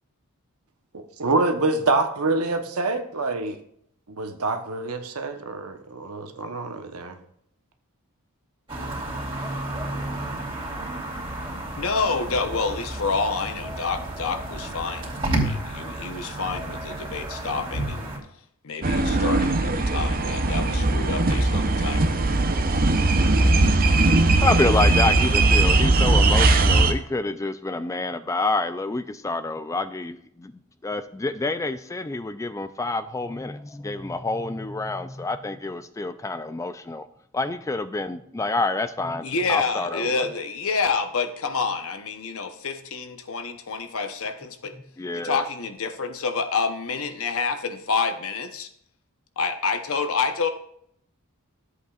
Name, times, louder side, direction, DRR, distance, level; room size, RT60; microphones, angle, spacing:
voice 1, 0.9-3.5 4.2-7.1, right 3 dB, 80° right, 6 dB, 1.0 m, -26 dB
sound 1, 8.7-18.2, right 1 dB, 25° right, 2.7 m, -31 dB
voice 2, 11.8-18.1 18.6-22.2 39.2-44.7 45.1-48.7 49.4-50.5, left 4 dB, 65° left, 7 dB, 0.9 m, -28 dB
sound 2, 18.8-26.9, right 2 dB, 40° right, 0.7 m, -19 dB
voice 3, 24.0-30.5 30.8-37.1 37.3-40.2 45.0-45.4, left 2 dB, 15° left, 11 dB, 0.3 m, -28 dB
13.0 x 8.1 x 2.4 m, 0.69 s
head